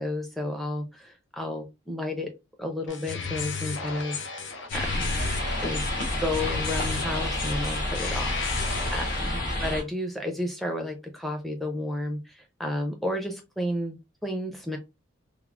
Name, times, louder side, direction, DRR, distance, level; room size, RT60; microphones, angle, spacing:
voice 1, 0.0-2.3 2.6-5.2 5.6-5.8 6.1-14.8, left 1 dB, ahead, 3 dB, 0.5 m, -32 dB
sound 1, 2.9-9.4, left 5 dB, 70° left, 0.6 m, -34 dB
sound 2, 4.7-9.8, left 1 dB, 45° left, 1.2 m, -29 dB
3.4 x 2.1 x 2.3 m, 0.25 s
head